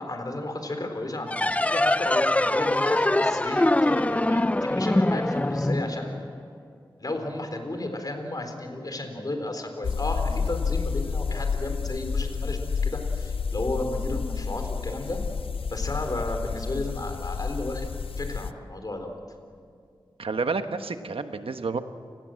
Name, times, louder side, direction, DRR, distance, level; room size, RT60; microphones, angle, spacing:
voice 1, 0.0-6.2 7.0-15.2 15.7-17.9 18.2-19.1, left 2 dB, 45° left, 5 dB, 3.7 m, -33 dB
sound 1, 1.3-6.5, left 1 dB, 15° left, 0.5 m, -23 dB
sound 2, 9.8-18.5, left 5 dB, 80° left, 0.5 m, -30 dB
voice 2, 20.2-21.8, right 4 dB, 85° right, 8 dB, 1.2 m, -29 dB
29.5 x 19.0 x 7.7 m, 2.2 s
wide cardioid pair, 85°, 9 cm